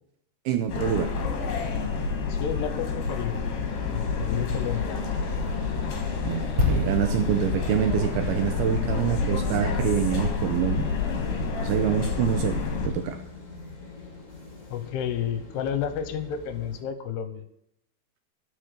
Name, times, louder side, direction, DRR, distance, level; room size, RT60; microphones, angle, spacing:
voice 1, 0.5-1.1 6.3-11.0 11.6-13.2, right 10 dB, 80° right, 7 dB, 2.3 m, -26 dB
sound 1, 0.7-12.9, left 5 dB, 50° left, 2.4 m, -29 dB
voice 2, 2.3-3.4 3.9-5.0 14.7-17.4, left 8 dB, 80° left, 10 dB, 2.6 m, -31 dB
sound 2, 3.6-16.8, left 3 dB, 30° left, 1.5 m, -39 dB
sound 3, 6.6-10.2 10.5-10.7, left 3 dB, 35° right, 1.9 m, -31 dB
12.5 x 6.6 x 6.5 m, 0.75 s
omnidirectional pair, 5.1 m